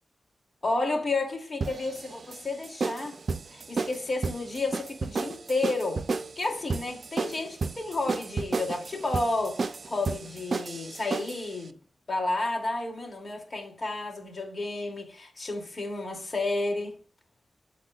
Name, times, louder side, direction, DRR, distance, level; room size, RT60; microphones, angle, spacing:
voice 1, 0.6-3.2 3.5-6.0 6.4-11.8 12.1-17.0, left 2 dB, 50° left, 2.5 m, -31 dB
sound 1, 1.6-11.5, right 4 dB, 60° right, 0.5 m, -32 dB
12.5 x 4.2 x 2.3 m
cardioid pair, 45°, 0 cm